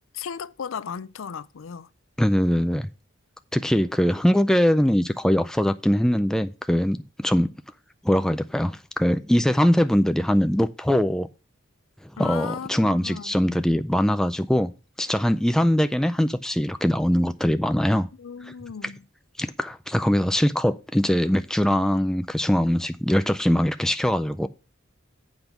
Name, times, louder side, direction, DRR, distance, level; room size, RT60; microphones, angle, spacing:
voice 1, 0.0-1.9 12.2-13.6 18.2-19.0, left 7 dB, 80° left, 0.5 m, -36 dB
voice 2, 2.2-2.9 3.5-7.5 8.0-11.3 12.2-14.7 15.0-18.1 19.4-24.5, equal, 5° left, 0.3 m, -22 dB
8.1 x 5.3 x 5.8 m
head